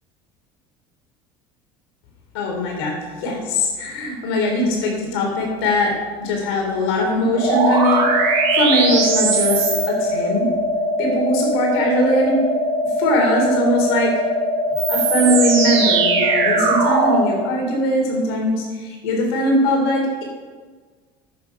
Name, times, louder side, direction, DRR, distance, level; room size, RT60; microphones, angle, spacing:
voice 1, 2.3-2.9 3.2-5.9 6.2-10.5 11.0-12.4 13.0-14.1 14.9-20.2, left 1 dB, 85° left, 0 dB, 3.9 m, -21 dB
sound 1, 7.4-17.3, right 2 dB, 75° right, 2.6 m, -20 dB
11.5 x 8.7 x 5.7 m, 1.5 s
supercardioid pair, 105°, 12 cm